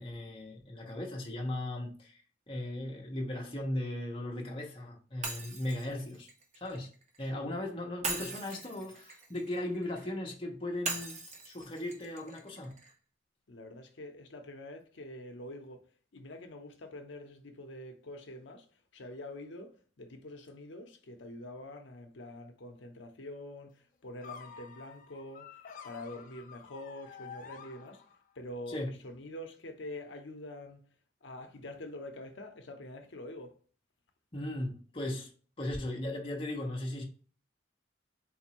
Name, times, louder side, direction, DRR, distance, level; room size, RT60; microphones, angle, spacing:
voice 1, 0.0-2.2 2.5-6.3 6.6-6.9 7.2-11.2 11.4-12.8 28.7-28.9 34.3-35.3 35.6-37.0, left 1 dB, 30° left, 0.9 m, -37 dB
Shatter, 5.2-7.3 8.0-10.1 10.9-12.9, right 3 dB, 35° right, 0.6 m, -41 dB
voice 2, 13.5-15.8 16.1-18.7 18.9-25.6 25.8-28.0 28.4-30.8 31.2-33.5, left 1 dB, 70° left, 0.7 m, -45 dB
sound 1, 24.2-28.4, left 6 dB, 45° left, 0.4 m, -49 dB
4.0 x 2.6 x 2.9 m
head